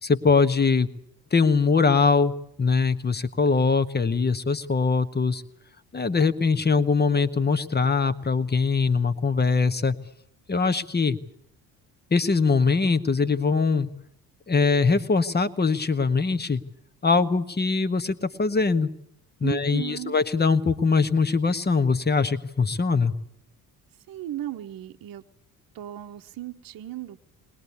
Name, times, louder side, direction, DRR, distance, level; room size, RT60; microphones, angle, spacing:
voice 1, 0.0-0.9 1.3-2.3 2.6-5.4 5.9-10.0 10.5-11.2 12.1-13.9 14.5-16.6 17.0-18.9 19.4-23.1, left 4 dB, 20° left, 11 dB, 1.4 m, -22 dB
voice 2, 19.4-20.2 24.1-25.2 25.7-27.2, right 13 dB, 50° right, 6 dB, 1.1 m, -35 dB
21.0 x 20.5 x 8.4 m, 0.71 s
hypercardioid pair, 55°, 46 cm